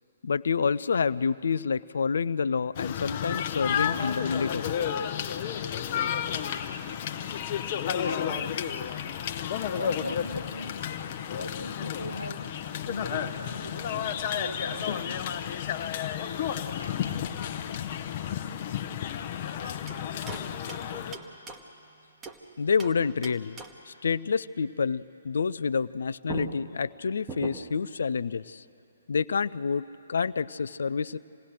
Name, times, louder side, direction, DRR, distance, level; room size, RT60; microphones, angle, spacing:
voice 1, 0.2-4.7 22.6-23.6 23.9-28.6 29.1-31.2, left 5 dB, 60° left, 17 dB, 0.5 m, -28 dB
sound 1, 2.8-21.2, left 9 dB, 35° left, 0.9 m, -32 dB
voice 2, 7.9-8.8 9.6-10.7 11.4-12.4 12.8-15.0 16.8-17.2 19.6-20.1 23.9-24.0, equal, 90° right, 5 dB, 1.5 m, -41 dB
sound 2, 19.9-22.5 22.8-24.0 25.9-26.0 26.3-27.9, right 4 dB, 15° right, 1.2 m, -42 dB
27.5 x 18.0 x 6.5 m, 2.6 s
figure-of-eight pair, 130°, 0 cm